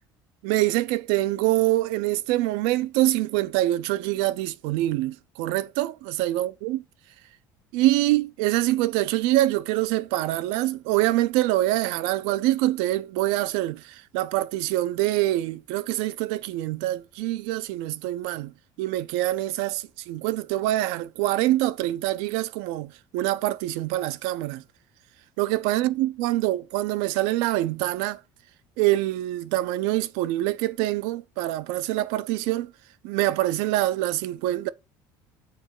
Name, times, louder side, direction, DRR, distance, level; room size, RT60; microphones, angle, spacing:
voice 1, 0.4-6.8 7.7-24.6 25.4-28.2 28.8-32.7 33.0-34.7, right 16 dB, 85° right, 0.6 m, -25 dB
6.6 x 4.0 x 6.5 m
cardioid pair, 125°, 9 cm